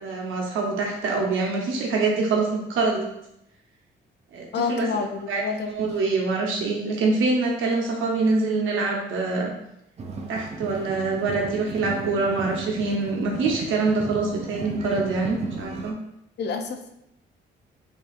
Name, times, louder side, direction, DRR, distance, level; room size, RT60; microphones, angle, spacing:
voice 1, 0.0-3.1 4.3-4.9 5.3-5.4 5.7-9.5 10.3-16.0, right 3 dB, 80° right, 0 dB, 0.9 m, -25 dB
voice 2, 4.5-5.7 16.4-16.9, left 5 dB, 60° left, 6 dB, 0.5 m, -28 dB
sound 1, 10.0-15.9, right 4 dB, 35° right, 0.5 m, -35 dB
4.5 x 2.8 x 2.5 m, 0.82 s
cardioid pair, 90°, 20 cm